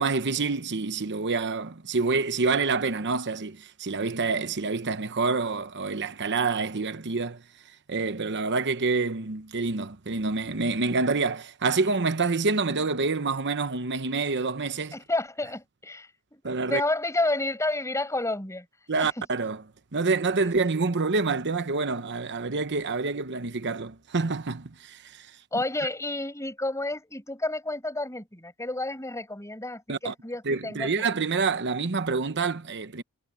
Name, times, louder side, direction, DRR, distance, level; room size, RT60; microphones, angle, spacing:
voice 1, 0.0-7.4 7.9-15.0 16.4-16.8 18.9-19.6 19.9-25.3 25.5-25.6 29.9-30.1 30.4-33.0, right 4 dB, 55° right, 1.0 m, -27 dB
voice 2, 14.9-16.4 16.7-18.7 19.0-19.3 25.5-31.2, left 2 dB, 15° left, 7.3 m, -30 dB
head